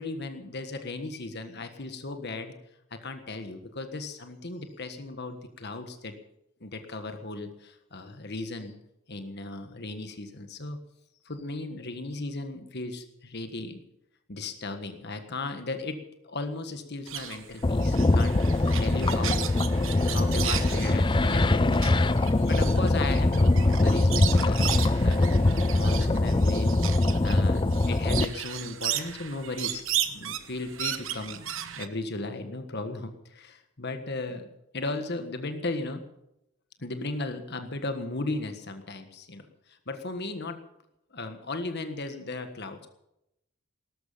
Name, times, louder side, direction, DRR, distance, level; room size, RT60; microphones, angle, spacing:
voice 1, 0.0-2.5 2.9-6.1 6.6-8.7 9.1-10.8 11.2-13.8 14.3-16.0 16.2-18.4 18.8-19.4 19.9-22.1 22.4-26.8 27.2-31.4 31.8-34.5 34.7-36.0 36.8-39.4 39.9-40.6 41.1-42.9, left 2 dB, 50° left, 7 dB, 1.5 m, -36 dB
sound 1, 17.1-31.9, right 11 dB, 65° right, 1.1 m, -35 dB
sound 2, 17.6-28.2, left 2 dB, 25° left, 0.5 m, -23 dB
17.5 x 13.5 x 5.7 m, 0.83 s
head